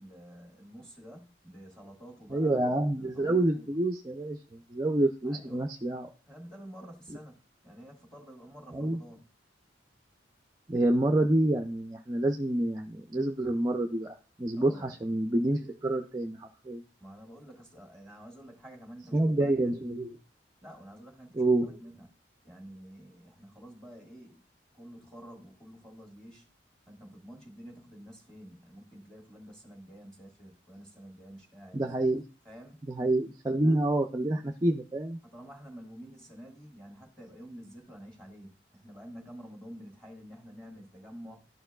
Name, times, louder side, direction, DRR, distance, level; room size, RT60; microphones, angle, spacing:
voice 1, 0.0-3.7 5.2-5.7 6.2-9.3 14.5-15.0 17.0-19.8 20.6-22.1 22.4-24.4 24.7-26.5 26.9-31.9 32.4-32.8 33.6-33.8 35.2-41.5, equal, 5° left, 1.7 m, -49 dB
voice 2, 2.3-6.1 8.7-9.0 10.7-16.8 19.1-20.1 21.4-21.7 31.7-32.2 32.9-35.2, right 1 dB, 20° right, 0.4 m, -28 dB
12.5 x 4.4 x 2.3 m
head